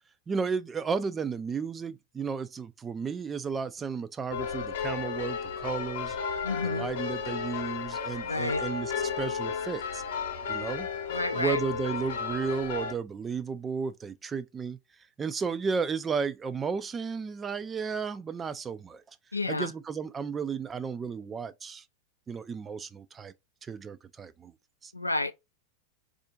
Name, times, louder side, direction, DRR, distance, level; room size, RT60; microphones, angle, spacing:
voice 1, 0.3-6.2 6.6-10.0 10.5-10.9 11.3-14.8 15.2-19.0 19.5-21.8 22.3-23.3 23.6-24.5 24.8-24.9, right 5 dB, 20° right, 0.3 m, -33 dB
sound 1, 4.3-12.9, left 6 dB, 55° left, 0.8 m, -33 dB
voice 2, 6.4-6.9 8.3-8.6 11.1-11.6 19.3-19.7 24.9-25.3, left 2 dB, 85° left, 0.3 m, -30 dB
4.2 x 2.5 x 2.2 m
figure-of-eight pair, 90°, 0 cm